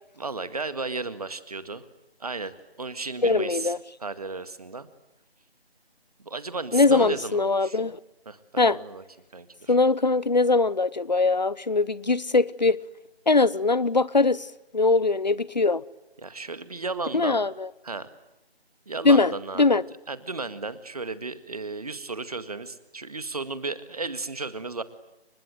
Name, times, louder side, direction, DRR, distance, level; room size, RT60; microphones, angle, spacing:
voice 1, 0.2-1.8 2.2-3.7 4.0-4.9 6.2-7.8 8.3-9.0 9.3-9.7 16.2-17.4 17.8-18.1 18.9-19.7 20.1-24.8, right 3 dB, 35° right, 1.9 m, -34 dB
voice 2, 3.2-3.8 6.7-8.0 8.6-8.8 9.7-12.8 13.3-14.4 14.7-15.8 17.1-17.7 19.0-19.8, left 3 dB, 40° left, 0.9 m, -21 dB
30.0 x 23.5 x 7.8 m
figure-of-eight pair, 165°, 32 cm